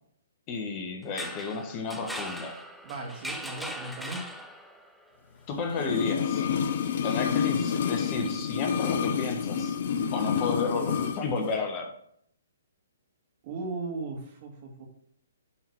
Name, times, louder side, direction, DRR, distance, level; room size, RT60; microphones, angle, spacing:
voice 1, 0.5-2.5 5.5-6.4 7.0-9.8 10.1-11.9, left 4 dB, 30° left, 3 dB, 1.4 m, -32 dB
sound 1, 1.0-4.9, equal, ahead, 0.7 m, -39 dB
voice 2, 2.8-4.2 13.4-14.9, right 3 dB, 40° right, 1 dB, 2.1 m, -37 dB
sound 2, 5.7-11.2 11.5-11.6, left 7 dB, 50° left, 0.7 m, -28 dB
10.0 x 3.9 x 4.7 m, 0.69 s
hypercardioid pair, 130°, 0 cm